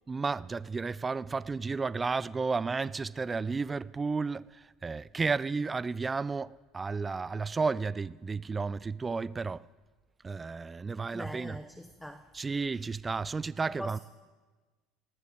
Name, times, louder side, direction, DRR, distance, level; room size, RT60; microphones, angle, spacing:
voice 1, 0.1-9.7 10.2-11.6 12.3-14.0, right 4 dB, 20° right, 0.3 m, -32 dB
voice 2, 11.1-12.3 13.6-14.0, equal, 5° left, 0.7 m, -42 dB
18.5 x 14.0 x 3.6 m
hypercardioid pair, 85°, 0 cm